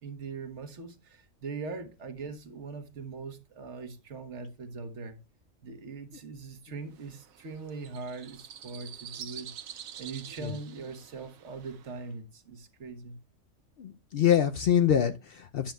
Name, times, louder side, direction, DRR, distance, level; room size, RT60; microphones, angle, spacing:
voice 1, 0.0-5.2 5.6-9.5 10.0-13.2, right 4 dB, 60° right, 1.4 m, -41 dB
sound 1, 6.9-12.1, right 9 dB, 90° right, 1.2 m, -47 dB
voice 2, 13.8-15.7, left 9 dB, 65° left, 0.6 m, -25 dB
10.0 x 7.5 x 2.2 m
omnidirectional pair, 1.4 m